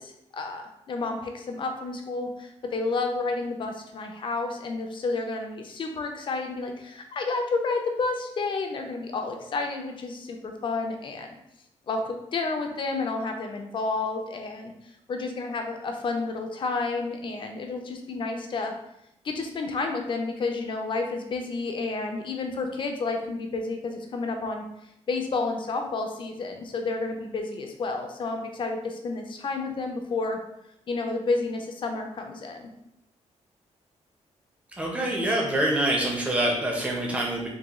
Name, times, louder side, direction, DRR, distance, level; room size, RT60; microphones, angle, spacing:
voice 1, 0.0-11.4 11.9-14.7 15.1-18.7 19.2-24.6 25.1-30.4 30.9-32.7, left 3 dB, 40° left, 4 dB, 0.4 m, -30 dB
voice 2, 34.8-37.5, right 1 dB, 10° right, -2 dB, 0.5 m, -25 dB
3.6 x 2.2 x 2.9 m, 0.80 s
wide cardioid pair, 165°, 12 cm